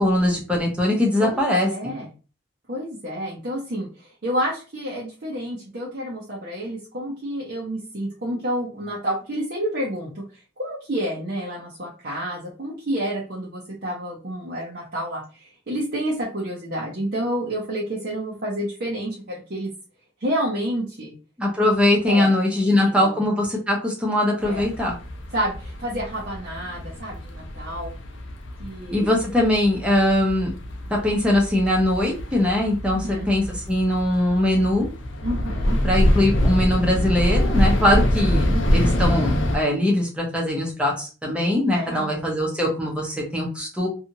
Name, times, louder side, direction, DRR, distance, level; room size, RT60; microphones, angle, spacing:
voice 1, 0.0-2.0 21.4-24.9 28.9-30.5 31.0-34.9 35.8-43.9, left 1 dB, 5° right, -2 dB, 0.7 m, -21 dB
voice 2, 1.2-2.1 2.7-10.2 10.6-19.7 20.2-21.1 22.1-22.3 22.6-23.2 24.4-24.7 25.3-27.9 28.6-29.1 32.9-33.3 35.2-35.8 38.3-38.7 41.7-42.0, equal, 55° right, -4 dB, 0.7 m, -29 dB
sound 1, 24.4-39.6, equal, 75° left, 0.6 m, -25 dB
2.7 x 2.4 x 2.7 m, 0.34 s
head